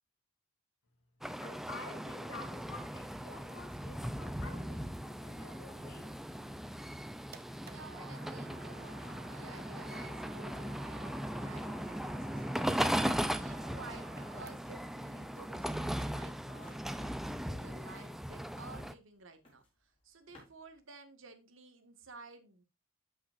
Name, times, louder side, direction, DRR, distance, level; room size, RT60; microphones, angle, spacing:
sound 1, 1.2-18.9, equal, ahead, 0.5 m, -38 dB
voice 1, 1.4-6.2, left 3 dB, 85° left, 3.0 m, -50 dB
sound 2, 7.3-14.9, right 5 dB, 50° right, 1.0 m, -54 dB
voice 2, 7.7-12.3 12.8-22.6, right 3 dB, 75° right, 1.9 m, -54 dB
sound 3, 18.6-20.8, left 1 dB, 30° left, 5.0 m, -65 dB
12.5 x 5.9 x 2.6 m
head